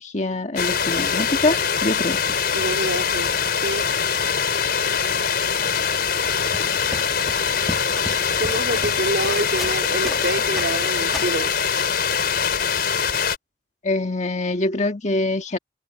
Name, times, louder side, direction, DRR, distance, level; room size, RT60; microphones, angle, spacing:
voice 1, 0.0-2.4 13.8-15.6, left 2 dB, 40° left, 1.6 m, -24 dB
sound 1, 0.6-13.4, left 6 dB, 60° left, 5.0 m, -23 dB
voice 2, 2.5-3.3 3.6-3.9 8.4-11.5, right 1 dB, 70° right, 3.7 m, -27 dB
sound 2, 6.2-10.3 10.6-11.4, equal, ahead, 1.9 m, -36 dB
head